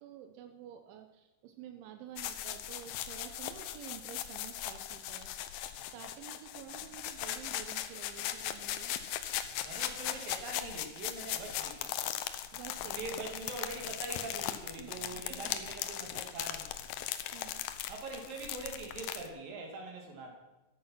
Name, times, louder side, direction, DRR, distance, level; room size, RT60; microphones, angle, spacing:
voice 1, 0.0-5.3 5.9-9.0 12.5-13.0 14.8-15.6 17.3-17.7, right 10 dB, 85° right, 6 dB, 3.3 m, -50 dB
sound 1, 2.2-19.3, left 11 dB, 90° left, 2.0 m, -39 dB
voice 2, 9.5-12.1 12.9-16.7 17.9-20.3, right 3 dB, 55° right, 1 dB, 4.0 m, -43 dB
13.5 x 11.0 x 5.9 m, 0.99 s
omnidirectional pair, 5.2 m